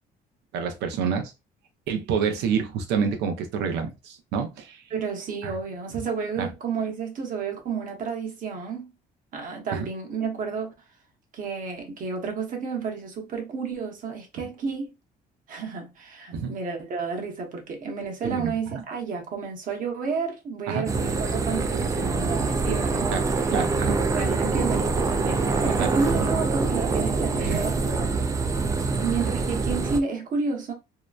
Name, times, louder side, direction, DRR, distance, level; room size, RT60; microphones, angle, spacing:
voice 1, 0.5-1.3 1.9-4.8 5.4-5.5 5.9-6.0 6.4-6.5 9.7-9.9 14.4-14.5 16.3-16.5 18.2-18.8 20.7-20.9 23.1-23.2 23.5-24.0 25.8-26.3 27.4-27.7, right 6 dB, 85° right, 0.7 m, -28 dB
voice 2, 4.9-8.9 9.3-10.7 11.3-14.9 15.5-23.1 23.5-23.6 24.0-28.1 28.9-30.7, right 5 dB, 55° right, 1.0 m, -31 dB
sound 1, 20.9-30.0, right 4 dB, 20° right, 0.4 m, -25 dB
2.8 x 2.1 x 2.3 m
cardioid pair, 110°, 17 cm